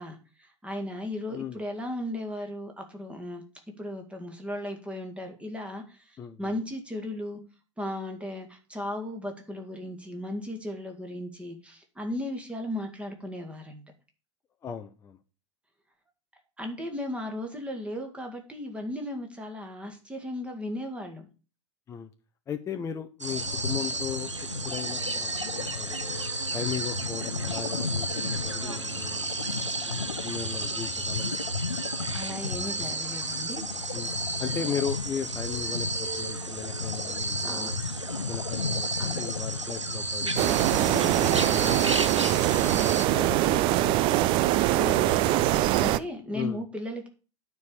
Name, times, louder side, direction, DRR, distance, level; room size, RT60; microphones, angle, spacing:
voice 1, 0.0-3.4 3.8-7.4 7.8-13.8 16.6-21.3 32.1-33.7 34.5-34.6 37.4-37.7 39.0-39.2 40.8-41.4 44.7-47.1, left 1 dB, 10° right, 4 dB, 2.0 m, -36 dB
voice 2, 6.2-6.5 14.6-15.2 21.9-22.1 22.5-24.3 24.6-26.0 26.5-29.3 29.9-31.4 33.9-34.1 34.4-37.8 38.2-40.6 41.2-41.8 42.1-44.1 46.3-46.6, left 7 dB, 20° left, 6 dB, 0.7 m, -37 dB
sound 1, 23.2-43.1, right 2 dB, 85° right, 0.8 m, -33 dB
sound 2, 23.3-43.2, left 5 dB, 80° left, 0.7 m, -36 dB
sound 3, 40.4-46.0, right 15 dB, 35° right, 0.4 m, -23 dB
9.5 x 4.7 x 6.8 m, 0.34 s
figure-of-eight pair, 85°, 15 cm